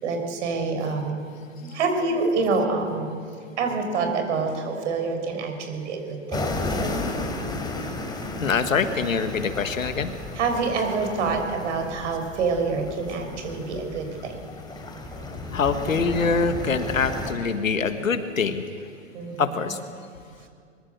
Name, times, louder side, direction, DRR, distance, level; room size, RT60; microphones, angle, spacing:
voice 1, 0.0-1.2 1.6-3.1 3.6-6.6 10.3-14.4 15.1-15.2 19.1-19.6, right 4 dB, 65° right, 6 dB, 5.8 m, -26 dB
sound 1, 6.3-17.3, left 2 dB, 10° left, 3.7 m, -33 dB
voice 2, 8.4-10.1 15.5-18.6 19.4-19.8, left 5 dB, 90° left, 8 dB, 1.7 m, -24 dB
23.5 x 20.5 x 8.2 m, 2.2 s
hypercardioid pair, 115°, 38 cm